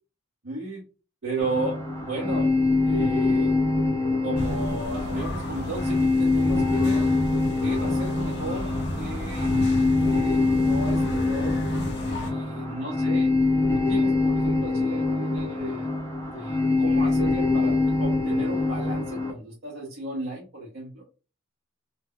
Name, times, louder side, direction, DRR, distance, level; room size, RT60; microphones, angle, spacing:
voice 1, 0.4-0.8 1.2-2.5 2.8-3.5 4.2-7.1 7.6-9.5 10.0-11.6 12.2-13.3 13.7-15.9 16.3-21.0, right 2 dB, 60° right, -4 dB, 0.7 m, -34 dB
sound 1, 1.4-19.3, left 2 dB, 15° left, 0.6 m, -24 dB
sound 2, 4.4-12.3, left 1 dB, 55° left, 0.5 m, -33 dB
2.2 x 2.0 x 3.6 m, 0.35 s
head